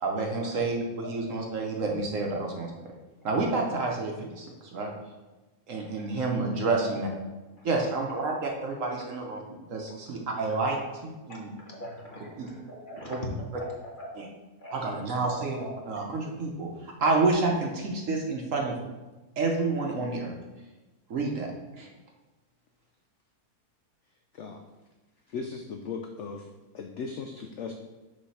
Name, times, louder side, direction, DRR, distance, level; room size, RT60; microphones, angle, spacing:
voice 1, 0.0-2.9 3.2-4.9 5.7-7.1 7.6-9.4 9.7-11.5 12.4-12.5 13.1-13.2 14.1-14.3 14.7-15.6 15.8-18.8 19.4-20.3 21.1-21.5 21.7-21.9, right 3 dB, 60° right, 1 dB, 1.1 m, -29 dB
voice 2, 11.3-13.3 13.5-13.7 14.0-14.2 14.6-14.7 15.2-15.7, left 1 dB, 35° left, -2 dB, 1.1 m, -42 dB
voice 3, 25.3-26.5 26.7-27.7, left 5 dB, 70° left, 4 dB, 0.7 m, -37 dB
6.4 x 3.3 x 5.6 m, 1.1 s
omnidirectional pair, 1.7 m